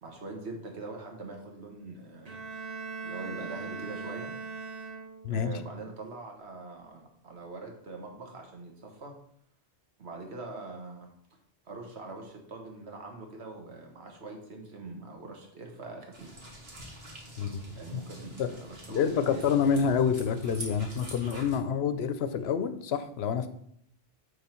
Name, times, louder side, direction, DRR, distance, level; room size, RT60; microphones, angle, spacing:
voice 1, 0.0-2.4 3.0-4.4 5.3-9.2 10.0-11.1 11.6-16.5 17.7-19.7, right 3 dB, 85° right, 2 dB, 1.6 m, -43 dB
Bowed string instrument, 2.2-5.5, right 4 dB, 40° right, 1.0 m, -40 dB
sound 1, 16.1-21.6, equal, 65° right, 1.8 m, -45 dB
voice 2, 17.4-18.0 18.4-18.5 18.9-23.5, left 7 dB, 75° left, 11 dB, 0.9 m, -28 dB
9.0 x 3.6 x 4.4 m, 0.68 s
omnidirectional pair, 1.1 m